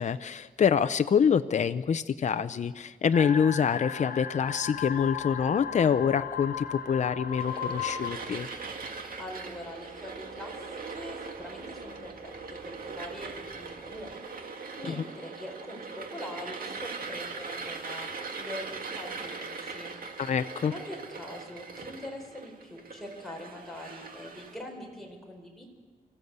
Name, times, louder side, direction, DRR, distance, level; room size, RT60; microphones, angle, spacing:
voice 1, 0.0-8.5 14.9-15.0 20.2-20.7, left 7 dB, 50° left, 11 dB, 0.6 m, -26 dB
sound 1, 3.1-8.1, left 8 dB, 75° left, 1.0 m, -36 dB
sound 2, 4.4-14.2, right 3 dB, 15° right, 3.9 m, -58 dB
sound 3, 7.3-24.6, right 4 dB, 70° right, 1.9 m, -40 dB
voice 2, 9.2-14.2 14.8-18.1 18.4-19.9 20.7-25.6, left 1 dB, ahead, 0 dB, 4.2 m, -43 dB
24.5 x 14.5 x 8.1 m, 1.5 s
wide cardioid pair, 150°, 15 cm